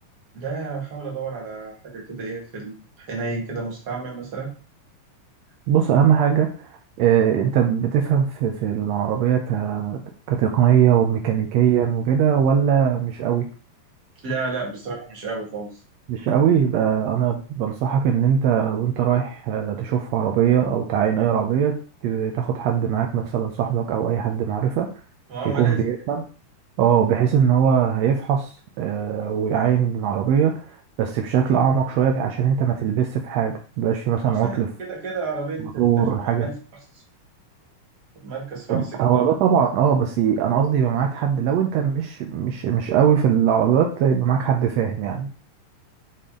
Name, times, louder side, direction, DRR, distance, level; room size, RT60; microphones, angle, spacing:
voice 1, 0.3-4.5 14.2-15.8 25.3-25.8 34.3-36.6 38.2-39.3, right 4 dB, 35° right, -2 dB, 1.9 m, -31 dB
voice 2, 5.7-6.7 7.0-10.0 10.3-13.5 16.1-24.9 25.5-26.2 26.8-28.5 28.8-34.7 35.8-36.5 38.7-45.3, right 8 dB, 85° right, 2 dB, 1.5 m, -21 dB
6.8 x 4.2 x 3.7 m, 0.38 s
omnidirectional pair, 3.8 m